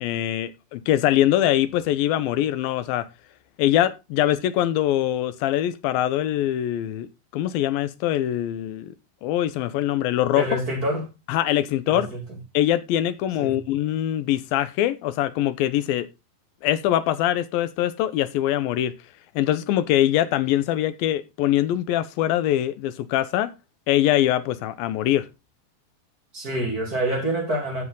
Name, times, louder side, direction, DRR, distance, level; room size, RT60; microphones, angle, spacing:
voice 1, 0.0-3.1 3.6-8.9 9.2-10.4 11.3-12.1 12.5-16.1 16.6-18.9 19.4-23.5 23.9-25.3, left 12 dB, 85° left, 2.6 m, -23 dB
voice 2, 10.3-11.1 11.9-12.4 13.4-13.6 26.3-27.8, right 1 dB, 25° right, 3.0 m, -27 dB
15.0 x 5.6 x 3.8 m
omnidirectional pair, 4.1 m